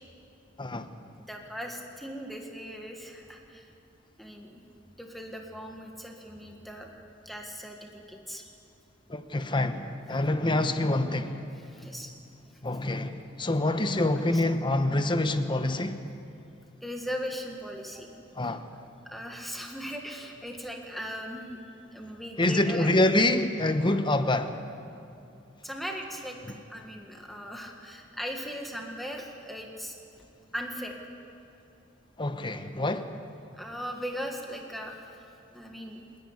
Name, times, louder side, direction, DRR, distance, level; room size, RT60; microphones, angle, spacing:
voice 1, 1.2-3.7 4.2-4.6 5.0-6.9 7.2-8.5 11.5-12.1 14.3-14.4 16.8-18.1 18.4-18.6 19.0-21.6 21.9-22.9 25.6-26.4 26.7-29.9 30.5-31.0 33.6-35.2 35.5-36.0, equal, ahead, 1.6 m, -38 dB
voice 2, 9.1-11.5 12.6-16.0 18.4-18.6 22.4-24.5 32.2-33.1, left 1 dB, 25° left, 1.0 m, -26 dB
28.5 x 11.0 x 9.7 m
head